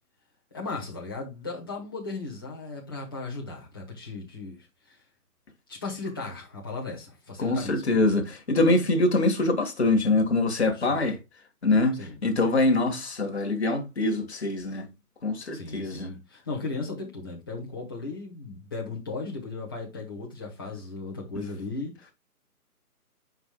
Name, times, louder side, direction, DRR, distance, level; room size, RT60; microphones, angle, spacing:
voice 1, 0.5-4.6 4.9-5.0 5.7-7.8 10.7-11.0 11.9-12.2 15.5-21.9, left 3 dB, 15° left, 1.2 m, -36 dB
voice 2, 7.4-11.2 11.6-14.9 15.2-16.1, left 2 dB, 45° left, 1.5 m, -24 dB
8.9 x 5.2 x 2.2 m
hypercardioid pair, 175°, 45 cm